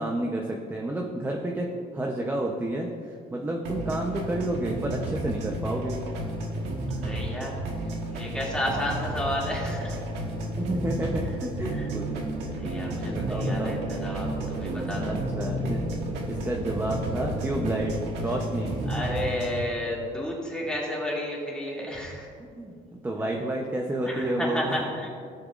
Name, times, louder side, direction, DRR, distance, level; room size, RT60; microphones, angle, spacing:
voice 1, 0.0-6.0 10.6-12.3 13.1-13.8 15.0-15.8 16.3-19.0 22.5-24.8, right 1 dB, 10° right, 0 dB, 0.8 m, -30 dB
sound 1, 3.7-19.6, right 1 dB, 85° right, 1.5 m, -32 dB
voice 2, 7.0-10.0 11.7-11.9 12.6-15.2 18.9-22.3 24.1-25.1, left 1 dB, 5° left, -4 dB, 2.5 m, -32 dB
sound 2, 9.3-18.0, right 2 dB, 65° right, 1.6 m, -38 dB
16.5 x 6.6 x 2.5 m, 2.3 s
cardioid pair, 110°, 17 cm